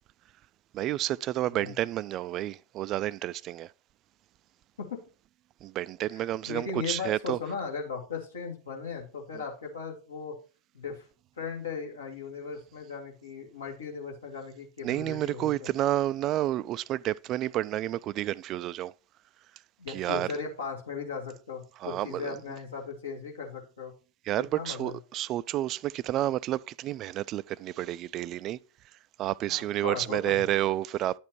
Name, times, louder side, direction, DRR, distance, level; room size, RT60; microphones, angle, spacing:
voice 1, 0.7-3.7 5.6-7.4 9.3-9.4 14.8-18.9 19.9-20.3 21.8-22.4 24.3-28.6 29.2-31.2, right 14 dB, 35° right, 0.3 m, -30 dB
voice 2, 6.1-10.3 10.7-11.0 11.4-15.7 19.8-23.9 24.5-25.0 29.5-30.5, left 5 dB, 70° left, 2.5 m, -37 dB
11.0 x 7.1 x 3.1 m
figure-of-eight pair, 90°, 0 cm